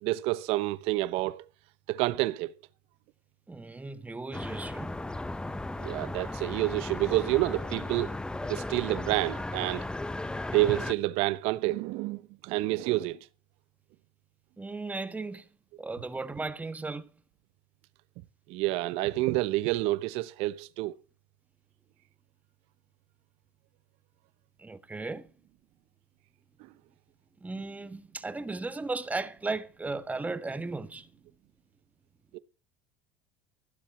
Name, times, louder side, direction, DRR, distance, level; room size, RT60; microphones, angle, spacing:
voice 1, 0.0-1.5 1.9-2.5 5.8-8.2 8.5-9.9 10.5-13.2 18.5-21.0 26.6-26.7 32.3-32.4, right 17 dB, 70° right, 0.9 m, -28 dB
voice 2, 3.5-4.9 14.6-15.4 15.8-17.1 24.6-25.3 27.4-31.1, right 3 dB, 15° right, 1.5 m, -36 dB
sound 1, 4.3-10.9, left 2 dB, 10° left, 0.8 m, -36 dB
16.0 x 7.5 x 5.9 m
supercardioid pair, 105°, 11 cm